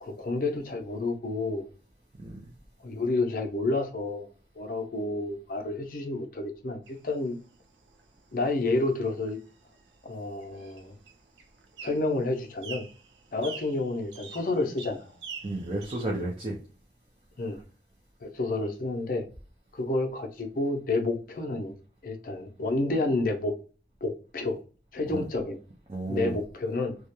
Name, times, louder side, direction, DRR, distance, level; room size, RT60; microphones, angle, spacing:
voice 1, 0.0-1.6 2.8-4.3 4.6-7.4 8.3-9.4 10.0-10.9 11.8-12.8 13.3-15.1 17.4-17.6 18.2-19.2 19.7-21.8 22.0-23.5 24.0-24.6 24.9-25.6 26.1-27.0, left 2 dB, 50° left, 0.5 m, -29 dB
sound 1, 6.9-16.0, right 5 dB, 85° right, 0.5 m, -47 dB
voice 2, 15.4-16.6 25.1-25.2 25.9-26.4, right 2 dB, 30° right, 0.4 m, -32 dB
2.3 x 2.1 x 2.9 m
head